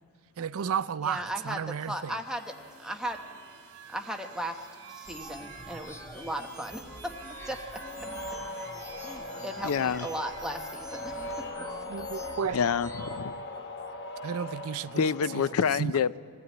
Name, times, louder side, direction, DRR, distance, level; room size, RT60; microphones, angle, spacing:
voice 1, 0.4-2.1 11.9-12.6 14.2-15.0 15.3-15.4 15.8-15.9, right 7 dB, 70° right, 0.4 m, -32 dB
voice 2, 1.0-3.2 3.9-7.2 7.4-7.6 8.6-8.7 9.0-11.5, right 1 dB, 5° right, 0.9 m, -37 dB
sound 1, 1.9-11.5, right 7 dB, 55° right, 2.7 m, -50 dB
sound 2, 5.0-13.2, equal, 15° left, 1.4 m, -46 dB
sound 3, 7.3-15.5, left 2 dB, 50° left, 1.1 m, -39 dB
voice 3, 9.6-10.1 12.5-13.3 15.0-16.2, left 6 dB, 70° left, 0.4 m, -27 dB
21.0 x 15.0 x 9.1 m
head